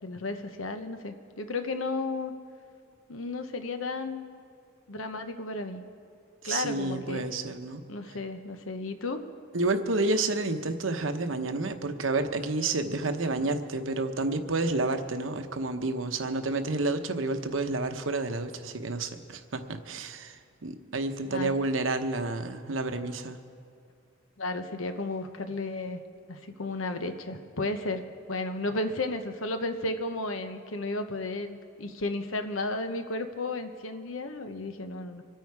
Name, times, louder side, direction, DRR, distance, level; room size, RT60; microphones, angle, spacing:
voice 1, 0.0-2.3 3.1-4.3 4.9-5.8 6.4-7.2 7.9-9.2 21.3-21.5 24.4-26.0 26.3-35.2, left 2 dB, 85° left, 8 dB, 1.1 m, -33 dB
voice 2, 6.4-7.8 9.5-23.4, right 2 dB, 75° right, 8 dB, 1.0 m, -30 dB
25.5 x 9.1 x 4.8 m, 2.4 s
head